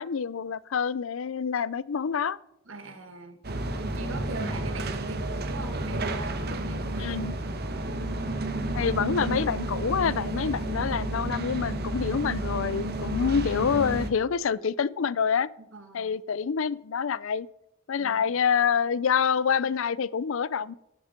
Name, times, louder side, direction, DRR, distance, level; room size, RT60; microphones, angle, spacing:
voice 1, 0.0-2.4 7.0-7.3 8.7-15.5 15.9-17.5 17.9-20.7, left 6 dB, 70° left, 0.5 m, -27 dB
voice 2, 2.6-3.4 3.7-7.2 15.6-16.2 18.0-18.4, right 3 dB, 65° right, 1.6 m, -41 dB
sound 1, 3.4-14.1, right 1 dB, 50° right, 1.2 m, -31 dB
12.5 x 9.5 x 5.1 m
head